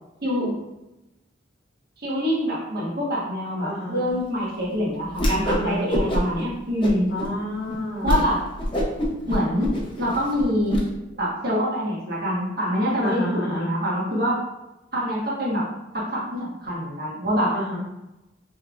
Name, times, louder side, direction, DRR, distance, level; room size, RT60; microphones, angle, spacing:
voice 1, 0.2-0.5 2.0-7.1 8.0-8.4 9.3-10.8 11.2-14.4 14.9-15.6 16.1-17.5, equal, 50° right, -5 dB, 1.4 m, -25 dB
voice 2, 3.6-4.0 5.4-5.8 7.1-8.3 13.0-13.7 17.5-17.8, left 1 dB, 50° left, -7 dB, 0.9 m, -30 dB
Whoosh swoosh swish, 5.1-5.6 5.9-6.4 6.8-7.3 7.7-7.8 8.0-8.2 8.6-10.8, equal, 25° left, 0.7 m, -24 dB
5.3 x 3.3 x 2.5 m, 0.97 s
head